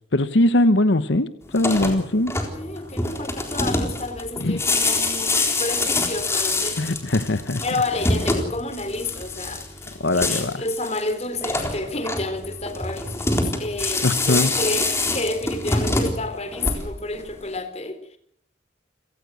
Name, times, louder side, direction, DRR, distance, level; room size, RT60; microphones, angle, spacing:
voice 1, 0.1-2.3 4.4-4.6 6.8-7.6 10.0-10.6 14.0-14.5, left 1 dB, 85° left, 12 dB, 1.1 m, -21 dB
sound 1, 1.5-17.1, left 2 dB, 15° left, 3.9 m, -25 dB
voice 2, 2.5-7.0 7.6-18.2, left 2 dB, 35° left, 9 dB, 3.8 m, -30 dB
29.0 x 18.0 x 6.5 m, 0.62 s
head